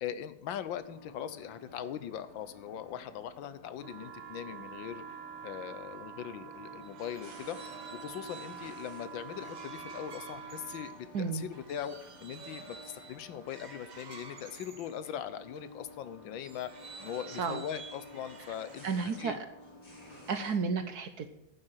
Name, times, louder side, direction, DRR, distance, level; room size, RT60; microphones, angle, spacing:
voice 1, 0.0-5.0 5.4-7.6 7.9-16.7 17.0-19.4, left 10 dB, 70° left, 13 dB, 1.4 m, -40 dB
sound 1, 0.8-20.6, left 2 dB, 30° left, 5.6 m, -53 dB
sound 2, 3.8-11.0, right 7 dB, 85° right, 2.1 m, -46 dB
sound 3, 6.6-15.7 16.3-19.3, right 5 dB, 40° right, 0.6 m, -51 dB
voice 2, 17.3-17.6 18.8-19.4 20.3-21.3, right 5 dB, 60° right, 9 dB, 1.2 m, -32 dB
11.0 x 6.8 x 8.9 m, 0.81 s
omnidirectional pair, 2.3 m